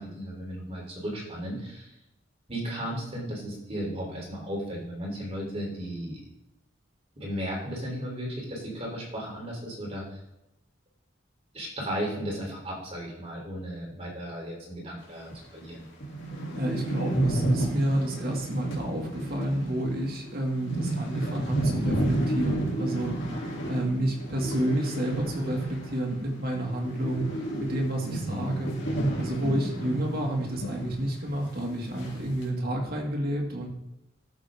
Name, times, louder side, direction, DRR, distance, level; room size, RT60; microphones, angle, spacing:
voice 1, 0.0-1.9 2.5-6.2 7.2-10.2 11.5-15.9 28.1-28.5, equal, 35° right, -2 dB, 3.5 m, -35 dB
sound 1, 15.3-15.4 15.7-15.8 16.0-26.2 26.5-31.0 31.3-31.4 32.0-32.4, right 1 dB, 80° left, 3.0 m, -31 dB
voice 2, 16.6-23.3 23.7-33.7, right 1 dB, 50° right, 0 dB, 2.2 m, -30 dB
13.0 x 6.9 x 3.7 m, 0.87 s
head